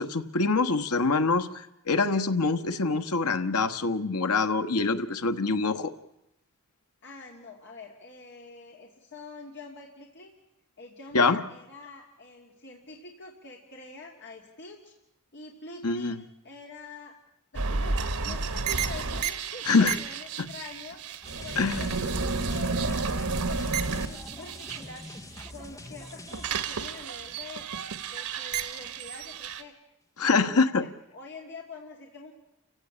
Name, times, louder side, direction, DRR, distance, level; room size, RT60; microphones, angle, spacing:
voice 1, 0.0-5.9 11.1-11.4 15.8-16.2 19.7-20.0 21.6-21.9 30.2-30.8, left 4 dB, 85° left, 10 dB, 1.3 m, -25 dB
voice 2, 7.0-10.3 10.8-14.9 15.3-16.2 16.4-17.2 17.5-21.0 21.4-25.1 25.5-27.7 28.1-29.7 30.2-32.3, left 3 dB, 50° left, 0 dB, 2.6 m, -46 dB
sound 1, 17.5-25.5 25.9-29.6, right 4 dB, 85° right, 1.6 m, -31 dB
sound 2, 21.2-28.1 28.4-28.5, left 1 dB, 15° left, 1.1 m, -45 dB
29.5 x 16.0 x 8.6 m, 0.88 s
head